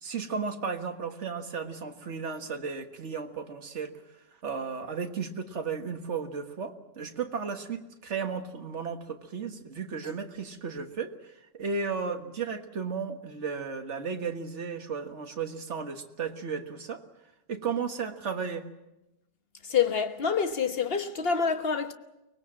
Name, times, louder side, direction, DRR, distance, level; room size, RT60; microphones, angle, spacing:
voice 1, 0.0-3.9 4.4-17.0 17.5-18.6, right 5 dB, 45° right, 1.8 m, -34 dB
voice 2, 19.6-21.9, left 6 dB, 40° left, 1.3 m, -27 dB
24.5 x 20.0 x 7.5 m
omnidirectional pair, 1.7 m